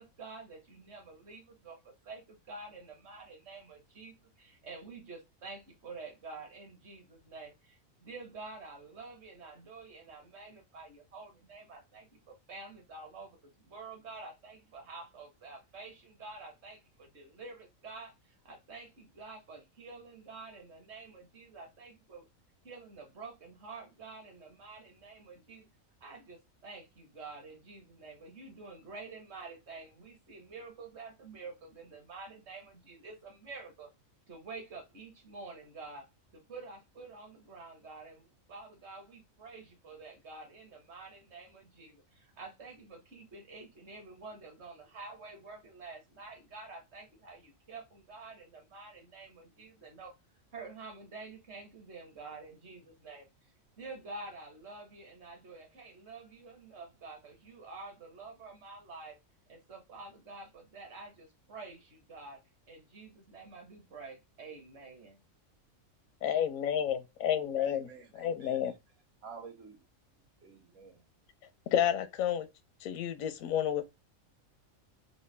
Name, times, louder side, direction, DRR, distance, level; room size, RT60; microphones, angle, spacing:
voice 1, 0.0-13.4 13.6-18.1 18.4-22.2 22.6-25.7 26.0-33.9 34.3-36.1 36.3-50.1 50.5-53.3 53.8-59.2 59.5-62.4 62.7-65.2, right 3 dB, 55° right, 1.4 m, -48 dB
voice 2, 66.2-67.9 68.1-68.7 71.7-72.5 72.8-73.9, left 10 dB, 85° left, 1.0 m, -30 dB
voice 3, 67.6-68.6 69.2-69.8 70.4-71.0, right 6 dB, 85° right, 1.6 m, -50 dB
3.9 x 2.2 x 3.2 m
omnidirectional pair, 1.4 m